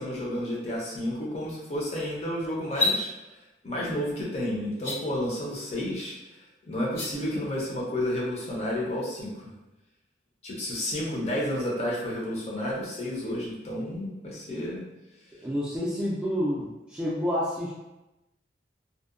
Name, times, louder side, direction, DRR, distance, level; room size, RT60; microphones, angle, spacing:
voice 1, 0.0-3.1 3.6-6.2 6.7-9.5 10.4-14.8, left 1 dB, 35° left, -4 dB, 0.6 m, -31 dB
sound 1, 2.6-3.0 4.7-5.0 6.8-7.1, left 3 dB, 55° left, 0.9 m, -26 dB
voice 2, 15.4-17.7, equal, 5° right, -7 dB, 0.3 m, -29 dB
2.6 x 2.2 x 2.5 m, 1.0 s
head